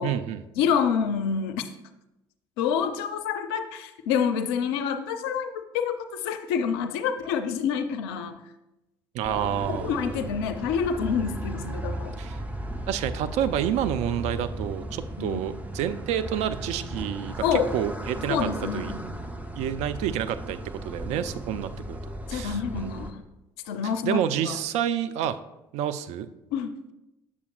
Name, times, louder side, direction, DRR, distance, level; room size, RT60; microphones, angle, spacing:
voice 1, 0.0-0.4 9.1-10.1 12.2-12.4 12.9-18.5 18.7-18.9 19.6-20.6 20.8-22.0 22.3-22.9 24.0-25.4 25.7-26.3, right 10 dB, 55° right, 11 dB, 0.4 m, -29 dB
voice 2, 0.6-1.7 2.6-6.0 6.2-8.4 9.7-12.2 15.2-15.4 17.4-17.7 18.3-19.1 22.3-23.2 23.7-24.6 26.5-26.7, left 7 dB, 65° left, 9 dB, 0.5 m, -27 dB
sound 1, 9.2-23.1, right 1 dB, 10° right, 0.8 m, -36 dB
8.3 x 6.9 x 2.4 m, 0.93 s
figure-of-eight pair, 55°, 13 cm